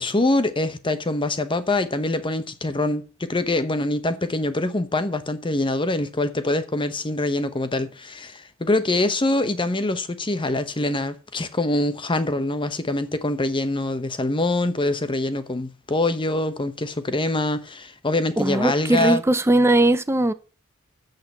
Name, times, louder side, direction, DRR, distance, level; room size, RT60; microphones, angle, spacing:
voice 1, 0.0-19.2, left 2 dB, 25° left, 0.9 m, -24 dB
voice 2, 18.4-20.3, right 1 dB, 15° right, 0.6 m, -19 dB
7.8 x 6.7 x 8.1 m
head